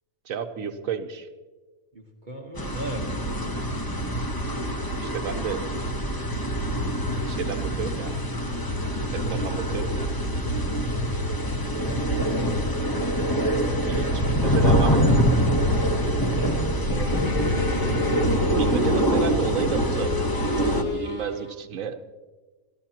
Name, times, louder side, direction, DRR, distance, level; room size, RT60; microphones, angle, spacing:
voice 1, 0.2-1.3 5.0-5.6 7.3-8.1 9.1-10.1 13.9-15.2 18.5-22.0, right 7 dB, 70° right, 8 dB, 1.2 m, -31 dB
voice 2, 1.9-3.6 9.3-9.6 11.8-12.3 16.2-16.8, right 2 dB, 35° right, -1 dB, 1.4 m, -38 dB
sound 1, 2.6-20.8, equal, 15° left, 0.9 m, -24 dB
sound 2, 12.1-16.1 16.6-17.7, right 1 dB, 70° left, 5.6 m, -40 dB
sound 3, 16.2-18.7 19.3-21.5, left 4 dB, 35° left, 1.4 m, -33 dB
29.0 x 13.5 x 2.9 m, 1.3 s
omnidirectional pair, 1.5 m